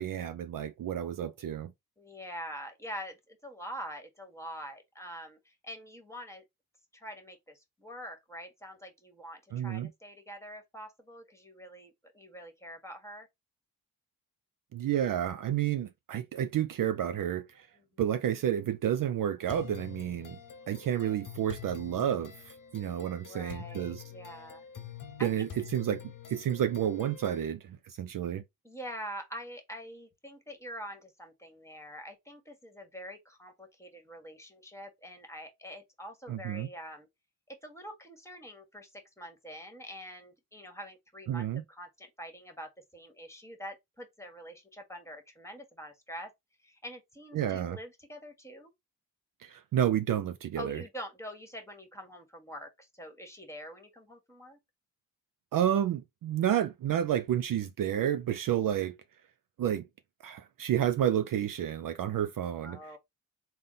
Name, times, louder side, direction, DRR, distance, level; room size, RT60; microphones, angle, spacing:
voice 1, 0.0-1.7 9.5-9.9 14.7-17.7 18.0-20.4 20.7-24.0 25.2-28.4 36.3-36.7 41.3-41.6 47.3-47.8 49.4-50.8 55.5-59.0 59.6-59.9 60.2-62.8, right 10 dB, 60° right, 0.4 m, -30 dB
voice 2, 2.0-6.4 6.9-13.3 17.8-18.0 23.2-24.6 25.2-25.5 28.6-37.1 37.5-46.3 46.6-48.7 50.6-54.6 62.6-63.0, equal, 5° left, 1.3 m, -45 dB
sound 1, 19.5-27.5, left 9 dB, 55° left, 0.7 m, -47 dB
3.6 x 2.1 x 3.9 m
cardioid pair, 65°, 38 cm